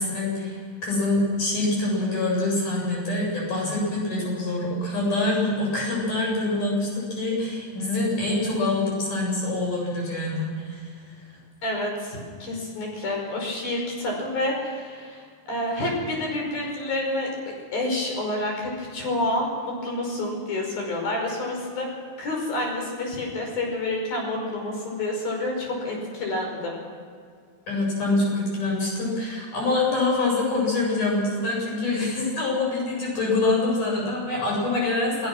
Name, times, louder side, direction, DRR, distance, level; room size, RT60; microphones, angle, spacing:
voice 1, 0.0-10.9 11.3-11.4 27.7-35.3, left 2 dB, 60° left, -3 dB, 9.0 m, -25 dB
voice 2, 11.6-17.3 17.7-21.9 22.2-26.8, left 1 dB, 85° left, 0 dB, 7.1 m, -28 dB
28.5 x 17.0 x 6.2 m, 2.1 s
omnidirectional pair, 4.1 m